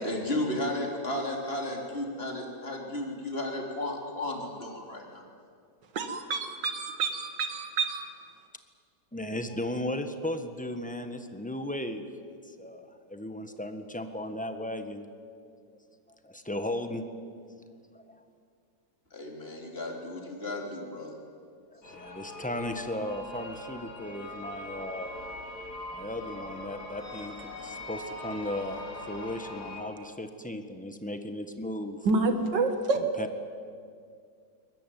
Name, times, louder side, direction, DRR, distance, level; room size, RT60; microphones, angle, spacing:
voice 1, 0.0-5.2 19.1-21.2, left 1 dB, 30° left, 1 dB, 3.7 m, -34 dB
voice 2, 5.9-8.1 32.1-33.0, right 3 dB, 70° right, 7 dB, 2.5 m, -28 dB
voice 3, 9.1-12.1 12.4-15.0 16.2-17.0 17.4-17.5 17.9-18.2 21.7-25.2 25.9-32.1 32.9-33.3, left 1 dB, 5° left, 7 dB, 1.2 m, -36 dB
sound 1, 21.8-29.8, left 1 dB, 55° left, 3.6 m, -42 dB
23.0 x 20.0 x 9.3 m, 2.2 s
omnidirectional pair, 2.1 m